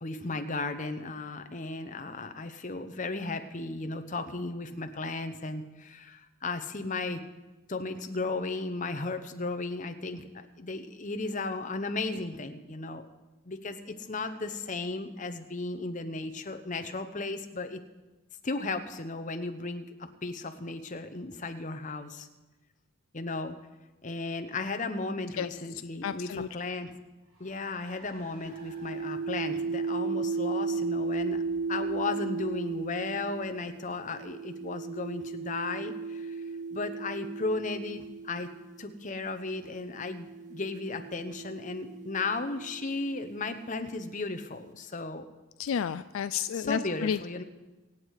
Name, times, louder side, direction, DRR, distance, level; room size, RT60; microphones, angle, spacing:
voice 1, 0.0-7.2 7.7-10.3 10.6-13.1 13.4-17.8 18.4-22.3 23.1-23.6 24.0-26.9 27.4-31.4 31.7-36.4 36.7-38.5 38.8-45.3 46.5-47.4, left 3 dB, 35° left, 7 dB, 0.9 m, -35 dB
voice 2, 26.0-26.5 45.6-47.2, left 7 dB, 70° left, 13 dB, 0.3 m, -31 dB
Car, 26.5-33.9, right 1 dB, 85° right, 3.9 m, -59 dB
sound 1, 28.5-38.8 39.7-43.5, right 4 dB, 35° right, 0.6 m, -35 dB
25.0 x 8.3 x 4.8 m, 1.1 s
head